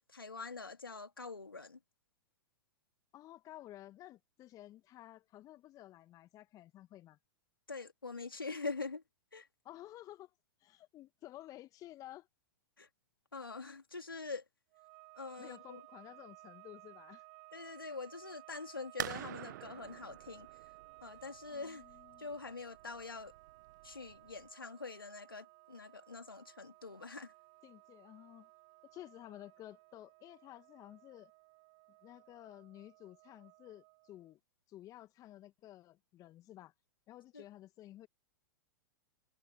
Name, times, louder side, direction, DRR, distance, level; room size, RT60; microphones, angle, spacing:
voice 1, 0.1-1.8 7.7-9.0 9.3-9.5 12.8-12.9 13.3-14.4 15.2-15.8 17.5-20.5 21.0-21.8 22.2-23.3 23.8-27.3 37.3-37.4, left 4 dB, 85° left, 2.6 m, -44 dB
voice 2, 3.1-7.2 9.6-10.3 10.6-12.3 15.4-17.3 21.5-22.3 27.6-28.5 28.9-31.3 32.0-34.4 34.7-36.7 37.1-38.1, left 14 dB, 30° left, 1.4 m, -53 dB
sound 1, 14.7-34.3, right 32 dB, 45° right, 2.8 m, -59 dB
sound 2, 19.0-24.5, right 14 dB, 60° right, 0.5 m, -47 dB
figure-of-eight pair, 100°, 11 cm